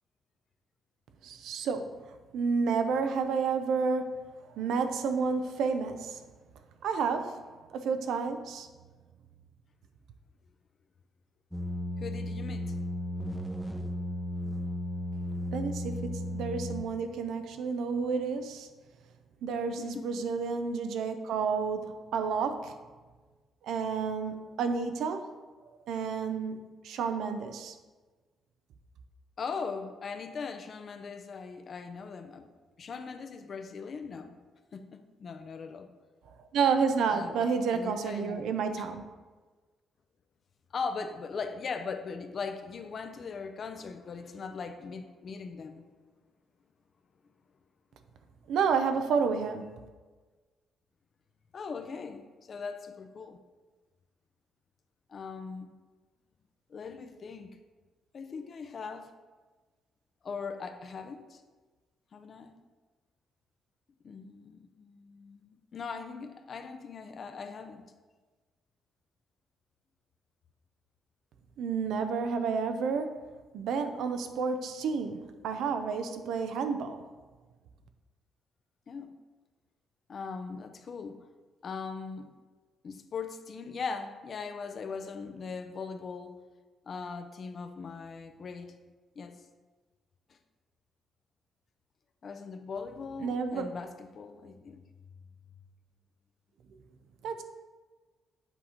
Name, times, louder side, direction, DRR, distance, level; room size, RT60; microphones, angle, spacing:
voice 1, 1.2-1.9 2.3-6.2 6.8-8.7 15.5-18.7 19.4-22.7 23.6-25.3 25.9-27.8 36.5-39.0 48.5-49.7 71.6-73.2 73.5-77.0 93.2-93.7 97.2-97.4, right 5 dB, 80° right, 8 dB, 0.5 m, -30 dB
sound 1, 11.5-16.9, left 1 dB, ahead, 0.7 m, -35 dB
voice 2, 12.0-12.8 19.8-20.2 29.4-32.5 32.8-34.4 34.7-35.9 37.1-38.5 38.8-38.9 40.7-45.9 51.5-53.4 55.1-55.7 56.7-57.5 58.1-59.1 60.2-61.4 62.1-62.6 64.0-67.9 78.9-79.2 80.1-81.2 81.6-82.3 82.8-86.4 86.9-88.7 89.2-89.4 90.3-90.4 92.2-95.5, left 5 dB, 50° left, 8 dB, 0.5 m, -40 dB
8.0 x 2.9 x 4.9 m, 1.3 s
cardioid pair, 90°, 0 cm